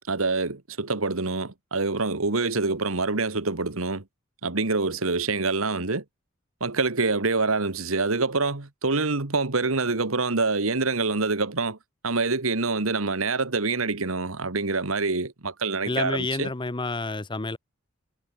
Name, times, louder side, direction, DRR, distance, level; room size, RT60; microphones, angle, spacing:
voice 1, 0.1-4.0 4.4-6.0 6.6-11.8 12.0-16.5, right 3 dB, 85° right, 1.8 m, -26 dB
voice 2, 15.8-17.6, left 3 dB, 25° left, 0.9 m, -29 dB
head